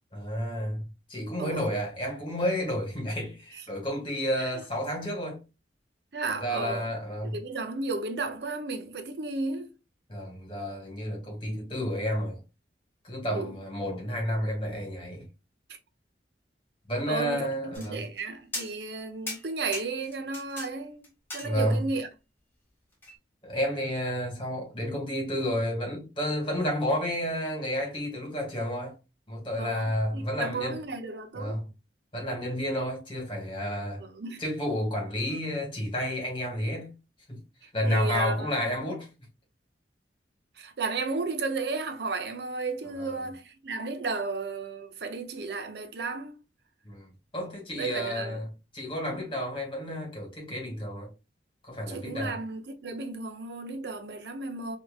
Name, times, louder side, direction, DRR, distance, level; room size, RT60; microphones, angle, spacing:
voice 1, 0.1-5.4 6.4-7.4 10.1-12.4 13.0-15.3 16.9-18.0 21.4-21.8 23.4-28.9 29.3-30.8 31.4-31.6 32.1-34.0 34.4-36.9 37.3-37.4 37.7-39.1 43.0-43.2 46.9-47.1 47.3-48.5 48.7-51.1 51.6-52.4, equal, 30° left, 1.9 m, -31 dB
voice 2, 1.4-1.7 4.4-4.6 6.1-6.9 7.3-9.7 13.3-13.5 17.1-21.1 21.3-22.1 29.6-31.6 34.0-34.4 37.8-38.5 40.6-46.4 47.8-48.4 51.9-54.8, right 3 dB, 70° right, 0.6 m, -34 dB
sound 1, 17.7-18.2 18.5-19.0 19.3-20.7 21.0-21.9 23.0-23.2, left 2 dB, 15° left, 1.4 m, -39 dB
4.5 x 2.8 x 2.3 m
head